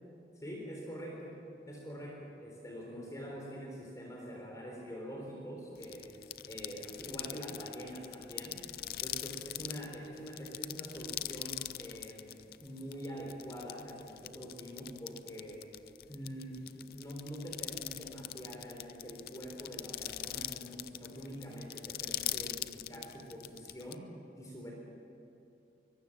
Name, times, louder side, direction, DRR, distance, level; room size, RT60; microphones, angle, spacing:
voice 1, 0.4-1.4 1.7-6.2 6.4-8.6 9.0-15.6 16.1-24.1 24.4-24.7, equal, 20° left, -1 dB, 4.1 m, -45 dB
sound 1, 5.8-23.9, left 13 dB, 55° left, 0.6 m, -42 dB
24.0 x 22.5 x 7.5 m, 2.8 s
head